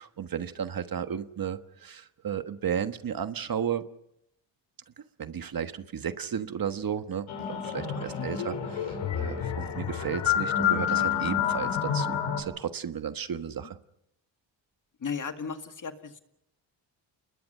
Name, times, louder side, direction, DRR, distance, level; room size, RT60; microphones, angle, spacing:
voice 1, 0.0-3.9 5.2-13.8, right 8 dB, 45° right, 10 dB, 1.4 m, -34 dB
sound 1, 7.3-12.4, left 8 dB, 85° left, 5.0 m, -28 dB
voice 2, 8.0-8.5 15.0-16.2, left 6 dB, 40° left, 7 dB, 2.0 m, -36 dB
30.0 x 21.0 x 5.6 m, 0.78 s
cardioid pair, 95°, 47 cm